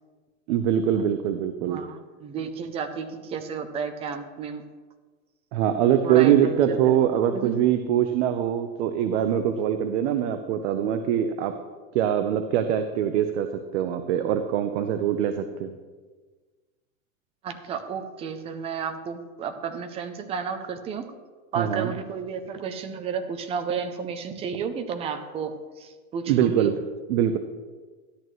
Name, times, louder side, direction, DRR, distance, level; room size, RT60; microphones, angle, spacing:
voice 1, 0.5-1.8 5.5-11.5 11.9-13.5 13.7-15.8 21.6-21.9 26.3-26.7 27.1-27.4, right 10 dB, 60° right, 8 dB, 0.8 m, -23 dB
voice 2, 1.6-4.6 6.0-7.0 7.3-7.5 17.4-21.0 21.5-26.7, right 6 dB, 15° right, 8 dB, 0.4 m, -32 dB
13.0 x 11.0 x 3.1 m, 1.4 s
supercardioid pair, 160°, 40 cm